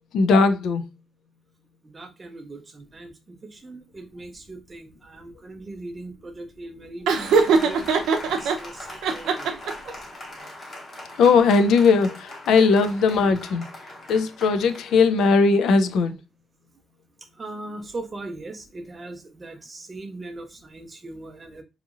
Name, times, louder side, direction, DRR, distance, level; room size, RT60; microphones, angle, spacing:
voice 1, 0.1-0.8 11.2-13.7 14.1-16.2, left 4 dB, 70° left, 0.3 m, -18 dB
voice 2, 1.8-8.1 8.4-9.6 17.4-21.6, right 2 dB, 20° right, 0.5 m, -39 dB
Applause, 7.1-16.1, left 1 dB, 30° left, 0.8 m, -41 dB
Laughter, 7.1-8.6 9.0-9.9, right 5 dB, 85° right, 0.5 m, -21 dB
2.8 x 2.6 x 2.4 m
cardioid pair, 165°, 0 cm